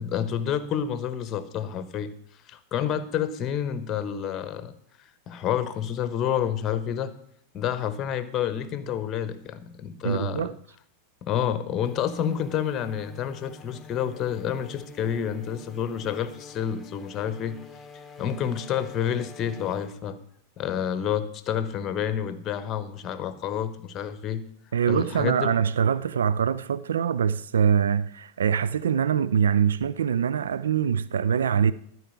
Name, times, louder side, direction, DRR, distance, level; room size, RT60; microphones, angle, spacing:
voice 1, 0.0-2.1 2.5-4.7 5.3-7.1 7.5-10.5 11.2-17.6 17.9-20.2 20.6-24.4 24.9-25.5, left 9 dB, 30° left, 1.0 m, -29 dB
voice 2, 10.0-10.6 24.7-31.7, right 7 dB, 65° right, 0.4 m, -24 dB
sound 1, 11.8-19.9, left 5 dB, 10° left, 1.2 m, -46 dB
13.5 x 4.7 x 8.2 m
figure-of-eight pair, 90°, 0 cm